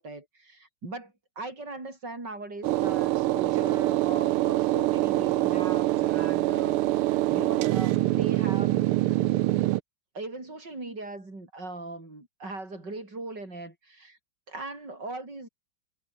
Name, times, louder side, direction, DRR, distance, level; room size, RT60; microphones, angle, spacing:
voice 1, 0.0-8.9 10.1-14.2 14.5-15.5, right 2 dB, 50° right, 7.4 m, -39 dB
sound 1, 2.6-9.8, right 16 dB, 85° right, 1.6 m, -25 dB
omnidirectional pair, 2.4 m